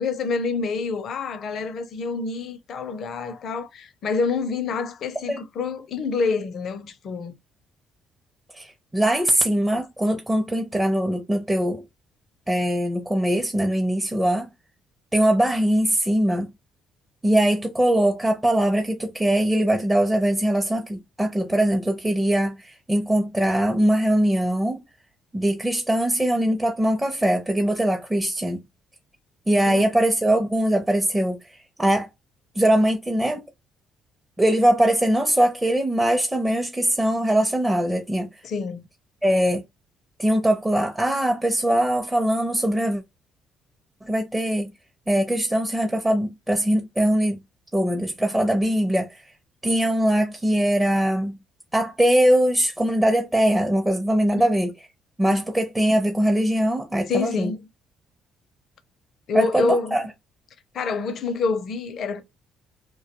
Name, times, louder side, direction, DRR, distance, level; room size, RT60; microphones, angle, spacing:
voice 1, 0.0-7.3 29.7-29.8 38.4-38.8 54.3-54.4 55.3-55.4 57.1-57.7 59.3-60.0 60.7-62.2, left 4 dB, 60° left, 0.5 m, -27 dB
voice 2, 8.5-11.8 12.5-14.5 15.1-16.5 17.2-24.8 25.3-28.6 29.5-32.1 32.6-33.5 34.4-38.3 39.2-39.6 40.2-43.0 44.0-44.7 45.1-47.4 47.7-49.3 49.6-51.4 51.7-54.7 55.2-57.5 59.3-60.1, right 1 dB, 10° right, 0.6 m, -21 dB
2.2 x 2.2 x 2.8 m
supercardioid pair, 60°, 0 cm